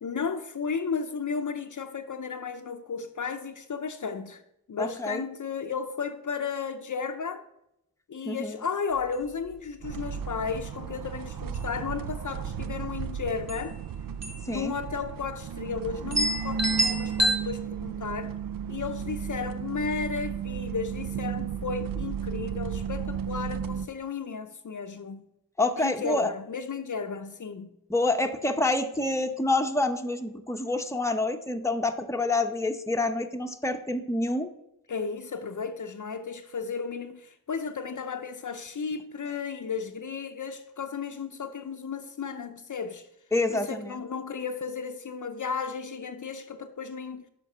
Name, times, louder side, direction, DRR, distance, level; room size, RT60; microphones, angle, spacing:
voice 1, 0.0-4.4 4.7-7.4 8.1-13.8 14.5-18.3 18.7-25.3 25.8-27.8 34.9-43.1 43.5-47.2, left 5 dB, 55° left, 0.6 m, -34 dB
voice 2, 4.8-5.2 8.2-8.6 14.5-14.7 25.6-26.3 27.9-34.5 43.3-44.0, left 2 dB, 10° left, 0.8 m, -27 dB
sound 1, 9.0-9.1 9.5-9.6 10.0-10.3 10.9-11.1 11.4-12.1 13.1-13.2 13.5-13.7 14.2-14.5 14.8-14.9 15.6-15.7 16.1-17.4, equal, 45° right, 1.4 m, -27 dB
sound 2, 9.8-23.9, right 7 dB, 65° right, 0.5 m, -34 dB
7.1 x 5.3 x 5.5 m
cardioid pair, 40°, 37 cm